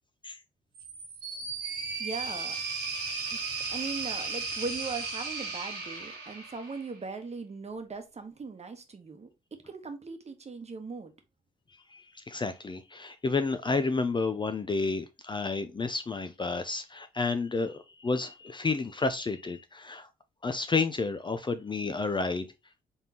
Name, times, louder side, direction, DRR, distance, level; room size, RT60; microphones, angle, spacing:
sound 1, 0.7-7.0, right 4 dB, 85° right, 1.6 m, -35 dB
voice 1, 2.0-2.6 3.3-3.4 3.7-11.1, right 4 dB, 35° right, 1.1 m, -39 dB
voice 2, 11.9-20.1 20.4-22.5, left 4 dB, 25° left, 0.5 m, -31 dB
3.9 x 3.6 x 2.8 m
hypercardioid pair, 45°, 19 cm